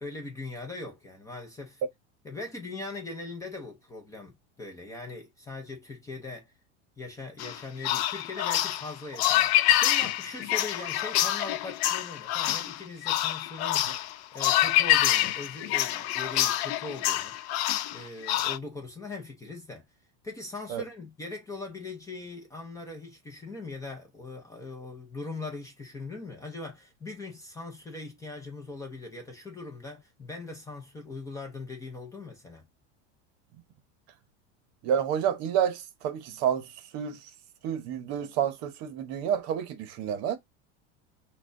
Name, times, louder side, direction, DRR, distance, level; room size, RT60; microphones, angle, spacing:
voice 1, 0.0-1.8 2.2-6.5 7.0-13.9 14.3-17.3 17.9-19.8 20.2-32.7, left 3 dB, 10° left, 0.6 m, -40 dB
sound 1, 7.4-18.6, left 13 dB, 65° left, 0.5 m, -26 dB
voice 2, 34.8-37.3 37.6-40.4, right 9 dB, 45° right, 0.9 m, -29 dB
5.9 x 2.3 x 2.5 m
supercardioid pair, 150°, 34 cm